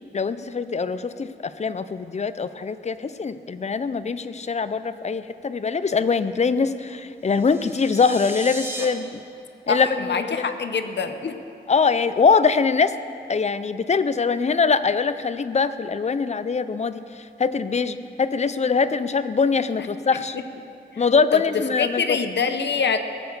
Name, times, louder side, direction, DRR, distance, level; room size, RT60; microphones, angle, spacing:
voice 1, 0.1-9.2 9.7-10.5 11.7-13.0 13.3-20.4 21.0-22.2, left 5 dB, 35° left, 13 dB, 0.5 m, -23 dB
sound 1, 7.3-8.8, right 1 dB, 15° right, 1.3 m, -36 dB
voice 2, 9.7-11.4 20.9-21.0 21.3-21.4 21.8-23.0, left 5 dB, 70° left, 8 dB, 0.7 m, -25 dB
17.5 x 7.7 x 7.1 m, 2.6 s
wide cardioid pair, 130°, 19 cm